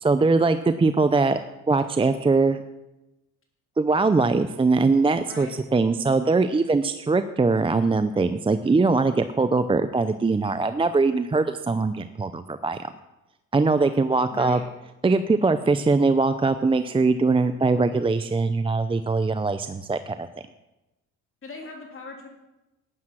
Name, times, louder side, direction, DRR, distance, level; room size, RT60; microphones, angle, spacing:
voice 1, 0.0-1.4 1.7-2.6 3.8-12.8 13.5-14.6 15.0-20.3, right 3 dB, 20° right, 10 dB, 0.6 m, -22 dB
voice 2, 14.3-14.6 21.4-22.3, left 3 dB, 45° left, 1 dB, 3.5 m, -39 dB
12.0 x 9.8 x 6.2 m, 0.98 s
cardioid pair, 90°, 30 cm